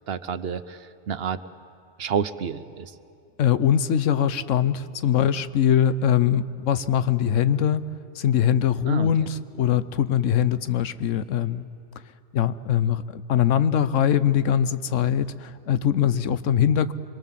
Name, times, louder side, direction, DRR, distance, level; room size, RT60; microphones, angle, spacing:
voice 1, 0.1-1.4 2.0-2.9 8.9-9.3, right 7 dB, 60° right, 13 dB, 0.9 m, -29 dB
voice 2, 3.4-7.8 8.2-11.6 12.3-16.9, left 9 dB, 90° left, 14 dB, 1.1 m, -22 dB
26.0 x 22.5 x 7.4 m, 2.8 s
omnidirectional pair, 1.3 m